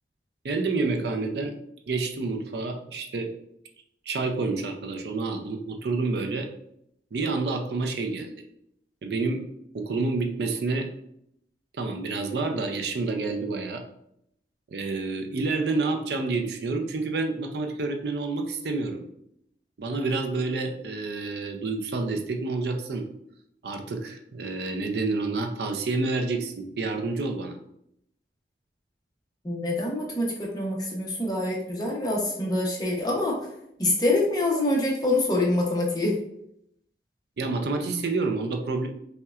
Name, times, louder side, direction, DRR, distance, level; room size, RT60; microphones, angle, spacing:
voice 1, 0.4-1.6 1.9-3.3 4.1-6.5 7.1-8.4 9.0-9.4 9.7-10.9 11.7-13.8 14.7-19.0 19.8-23.1 23.6-27.6 37.4-38.9, right 3 dB, 65° right, 5 dB, 0.4 m, -28 dB
voice 2, 29.4-33.4 33.8-36.2, left 2 dB, 20° left, -2 dB, 0.7 m, -25 dB
5.5 x 2.2 x 2.4 m, 0.76 s
head